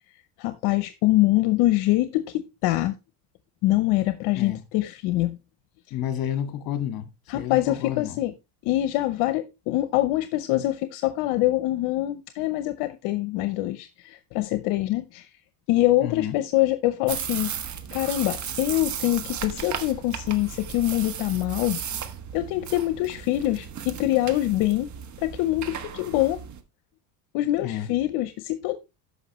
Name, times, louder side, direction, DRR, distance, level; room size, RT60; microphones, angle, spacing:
voice 1, 0.4-2.9 3.6-5.4 7.3-8.3 8.6-15.3 15.7-17.5 17.9-21.8 22.3-24.9 25.2-26.4 27.3-28.8, left 16 dB, 75° left, 0.8 m, -24 dB
voice 2, 5.9-8.2 16.0-16.4 27.6-27.9, left 10 dB, 55° left, 2.0 m, -30 dB
sound 1, 17.1-26.6, right 8 dB, 40° right, 1.3 m, -35 dB
13.5 x 5.6 x 3.0 m
cardioid pair, 120°, 43 cm